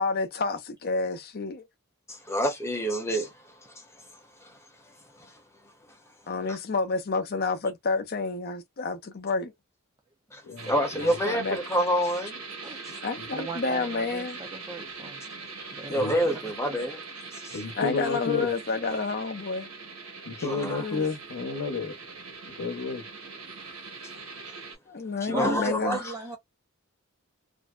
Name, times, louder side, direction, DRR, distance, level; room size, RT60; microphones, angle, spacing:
voice 1, 0.0-1.7 6.3-9.5 11.0-11.6 13.0-14.4 17.8-19.7 20.5-21.0 24.9-26.0, left 4 dB, 45° left, 0.6 m, -29 dB
voice 2, 2.1-4.6 4.9-5.4 10.3-10.4 10.7-12.4 15.6-17.6 20.4-20.9 25.2-26.1, equal, 15° left, 0.8 m, -29 dB
voice 3, 10.4-11.2 13.2-13.3 15.9-16.1 17.5-18.5 20.3-21.9 22.6-23.0, left 4 dB, 85° left, 0.8 m, -31 dB
sound 1, 10.6-24.8, right 4 dB, 75° right, 1.3 m, -42 dB
voice 4, 13.3-15.2 15.7-16.2 16.6-16.8 17.5-17.6 25.3-26.4, right 4 dB, 20° right, 0.4 m, -37 dB
2.6 x 2.1 x 2.3 m
head